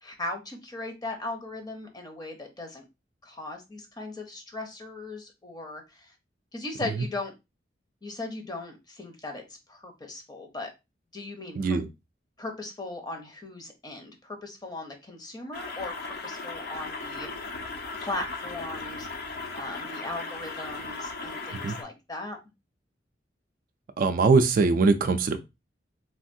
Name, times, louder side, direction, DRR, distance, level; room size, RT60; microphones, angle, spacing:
voice 1, 0.0-2.8 3.2-6.1 6.5-7.3 8.0-9.4 9.7-10.7 11.1-11.8 12.4-15.9 16.2-17.3 18.0-19.1 19.5-22.4, left 2 dB, 25° left, 3 dB, 0.7 m, -38 dB
voice 2, 11.6-11.9 21.5-21.8 24.0-25.4, right 4 dB, 50° right, 8 dB, 0.3 m, -22 dB
sound 1, 15.5-21.8, left 3 dB, 60° left, 0.6 m, -37 dB
3.4 x 2.4 x 2.6 m, 0.24 s
head